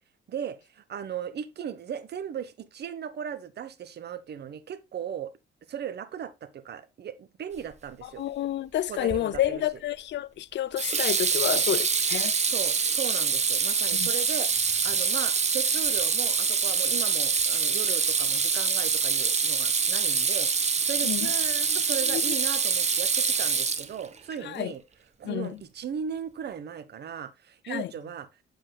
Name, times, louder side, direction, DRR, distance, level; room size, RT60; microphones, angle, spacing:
voice 1, 0.3-5.3 5.7-8.2 8.9-9.6 11.5-11.7 12.4-24.8 25.2-28.3, right 8 dB, 55° right, 1.1 m, -37 dB
voice 2, 8.0-12.3 13.9-14.1 21.0-21.3 22.1-22.2 24.4-24.7 25.2-25.6 27.7-27.9, left 13 dB, 65° left, 0.5 m, -30 dB
Water tap faucet / Sink (filling or washing), 9.1-9.5 10.8-24.2, right 5 dB, 35° right, 1.2 m, -25 dB
7.9 x 7.7 x 2.2 m
cardioid pair, 90°, 20 cm